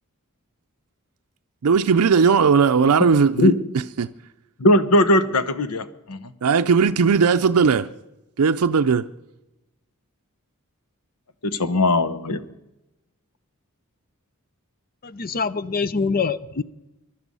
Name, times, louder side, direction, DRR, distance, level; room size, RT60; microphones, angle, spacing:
voice 1, 1.6-3.5 4.0-4.1 6.4-7.9 8.4-9.1, right 5 dB, 75° right, 0.5 m, -17 dB
voice 2, 4.6-6.2 11.4-12.4, left 1 dB, 90° left, 1.0 m, -19 dB
voice 3, 15.0-16.6, left 4 dB, 40° left, 0.6 m, -24 dB
22.0 x 12.0 x 5.5 m
head